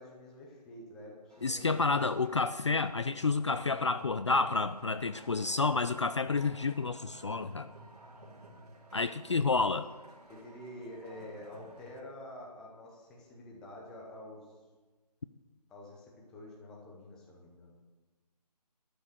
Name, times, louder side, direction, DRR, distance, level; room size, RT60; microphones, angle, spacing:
voice 1, 0.0-1.9 9.2-9.6 10.3-14.4 15.7-17.8, left 1 dB, 5° left, -2 dB, 0.7 m, -48 dB
sound 1, 1.3-12.0, right 1 dB, 65° right, 3.3 m, -54 dB
voice 2, 1.4-7.7 8.9-9.9, left 4 dB, 45° left, 12 dB, 0.4 m, -30 dB
12.5 x 6.4 x 9.0 m, 1.3 s
figure-of-eight pair, 165°, 21 cm